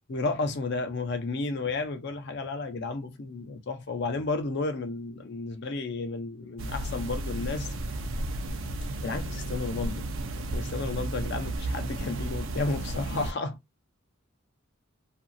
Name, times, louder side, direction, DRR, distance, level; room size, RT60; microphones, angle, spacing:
voice 1, 0.1-7.7 8.9-10.1 10.5-13.6, left 3 dB, 55° left, 0.6 m, -32 dB
sound 1, 6.6-13.3, right 1 dB, 70° right, 0.5 m, -33 dB
2.9 x 2.5 x 2.5 m
head